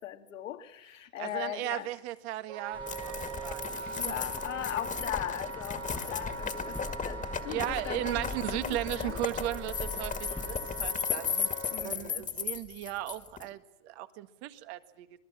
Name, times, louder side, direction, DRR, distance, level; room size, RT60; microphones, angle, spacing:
voice 1, 0.0-1.9 4.0-9.2 11.7-12.3, left 12 dB, 85° left, 8 dB, 1.9 m, -39 dB
voice 2, 1.2-4.2 7.5-11.5 11.8-15.1, right 15 dB, 60° right, 10 dB, 1.7 m, -36 dB
Wind instrument woodwind instrument, 2.5-11.8, right 3 dB, 80° right, 6.5 m, -42 dB
sound 1, 2.7-10.9, left 2 dB, 5° left, 1.2 m, -44 dB
sound 2, 2.9-13.4, left 6 dB, 20° left, 1.9 m, -35 dB
26.5 x 20.0 x 7.4 m, 0.90 s
hypercardioid pair, 110°, 37 cm